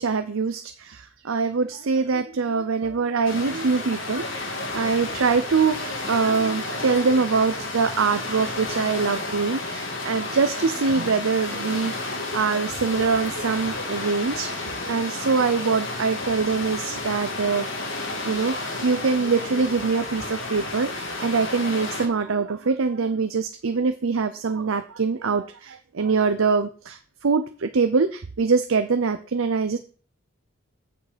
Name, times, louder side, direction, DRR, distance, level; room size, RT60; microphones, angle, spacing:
voice 1, 0.0-29.8, right 4 dB, 85° right, 9 dB, 0.6 m, -24 dB
sound 1, 3.2-22.1, left 2 dB, 75° left, 1.8 m, -31 dB
8.6 x 6.8 x 5.1 m, 0.41 s
head